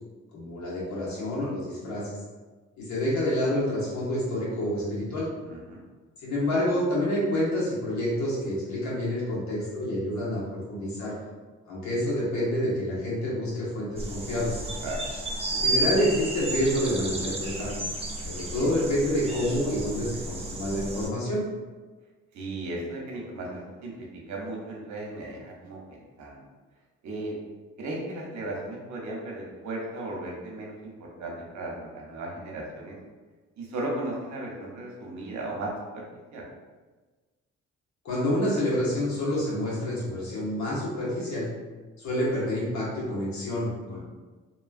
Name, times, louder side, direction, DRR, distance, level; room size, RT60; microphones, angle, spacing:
voice 1, 0.3-2.2 2.8-5.3 6.2-11.1 11.6-14.6 15.5-17.7 18.2-21.4 38.0-41.5 42.0-44.0, left 1 dB, 70° left, -7 dB, 1.2 m, -28 dB
voice 2, 5.5-5.8 14.8-15.0 22.3-26.4 27.0-27.4 27.8-33.0 33.6-36.0 36.3-36.4, right 2 dB, 70° right, -2 dB, 0.7 m, -36 dB
sound 1, 14.0-21.1, right 2 dB, 20° right, 0.4 m, -32 dB
2.9 x 2.3 x 2.4 m, 1.3 s
cardioid pair, 90°, 30 cm